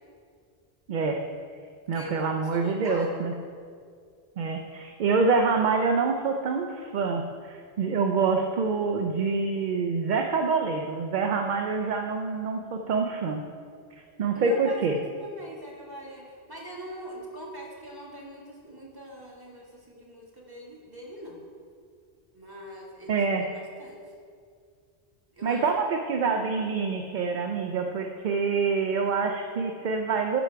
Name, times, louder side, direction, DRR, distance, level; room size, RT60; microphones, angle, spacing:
voice 1, 0.9-1.2 1.9-3.3 4.4-13.4 14.2-15.0 23.1-23.4 25.4-30.4, right 4 dB, 55° right, 4 dB, 0.6 m, -26 dB
voice 2, 1.9-3.1 14.3-21.4 22.3-24.0 25.3-25.9, equal, 20° right, -3 dB, 1.7 m, -42 dB
12.5 x 5.1 x 4.5 m, 2.2 s
omnidirectional pair, 1.1 m